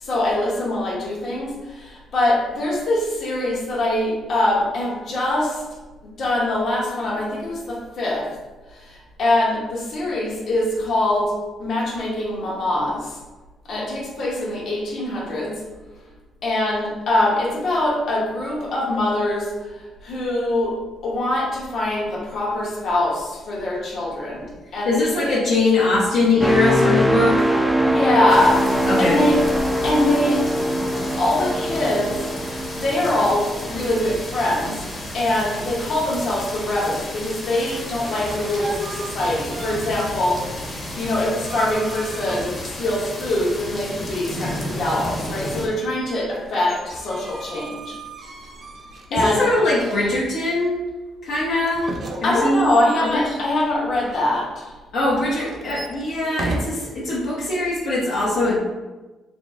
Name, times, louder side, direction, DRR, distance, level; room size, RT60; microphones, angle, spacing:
voice 1, 0.0-5.6 6.2-8.3 8.7-11.3 11.6-13.1 13.7-15.5 16.4-19.5 20.0-25.4 27.8-29.4 29.8-30.4 30.9-34.9 35.1-48.0 49.1-49.5 52.2-54.7, left 1 dB, 60° left, -4 dB, 1.2 m, -23 dB
voice 2, 24.8-27.5 28.8-29.2 49.1-50.8 51.2-51.9 52.2-52.7 53.0-53.4 54.9-58.6, left 2 dB, 80° left, -8 dB, 0.9 m, -21 dB
sound 1, 26.4-34.2 34.7-34.9, equal, ahead, 0.3 m, -22 dB
sound 2, 28.3-45.7, left 1 dB, 35° left, 0.9 m, -33 dB
sound 3, 37.5-40.1 40.4-43.0 44.0-50.6 51.7-54.2 55.0-56.6, right 3 dB, 50° right, 0.6 m, -37 dB
4.0 x 2.1 x 3.6 m, 1.2 s
cardioid pair, 90°, 0 cm